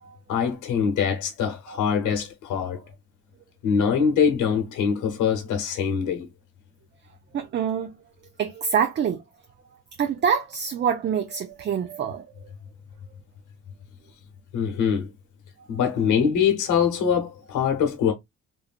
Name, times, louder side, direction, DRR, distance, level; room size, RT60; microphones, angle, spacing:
voice 1, 0.3-2.8 3.6-6.3 14.5-15.1 15.7-18.1, left 7 dB, 80° left, 0.9 m, -23 dB
voice 2, 7.3-7.9 8.4-9.2 10.0-12.5, right 7 dB, 40° right, 0.4 m, -26 dB
3.1 x 2.4 x 2.4 m
cardioid pair, 90°, 30 cm